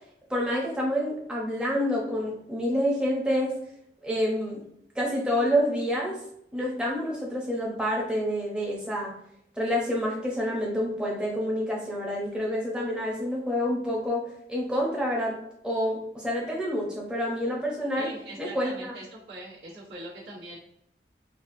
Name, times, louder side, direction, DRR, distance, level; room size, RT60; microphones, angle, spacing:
voice 1, 0.3-3.5 4.0-4.6 4.9-6.2 6.5-9.1 9.6-14.2 14.5-15.4 15.6-18.1 18.4-18.9, equal, 5° right, -3 dB, 0.7 m, -28 dB
voice 2, 17.9-20.6, right 1 dB, 80° right, -9 dB, 1.2 m, -42 dB
4.1 x 2.3 x 2.6 m, 0.73 s
head